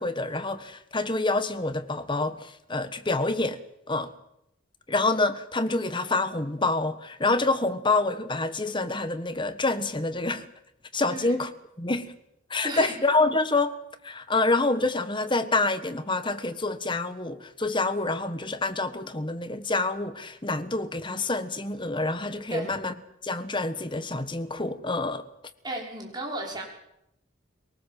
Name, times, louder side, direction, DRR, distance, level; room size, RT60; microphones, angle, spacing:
voice 1, 0.0-3.6 3.9-4.1 4.9-10.5 10.9-11.5 11.8-12.1 12.5-13.7 14.0-22.9 23.2-25.2, left 2 dB, 25° left, 1.3 m, -27 dB
voice 2, 11.1-11.4 12.6-12.9 22.5-22.8 25.6-26.6, right 1 dB, 20° right, 5.8 m, -34 dB
23.0 x 18.5 x 7.7 m
head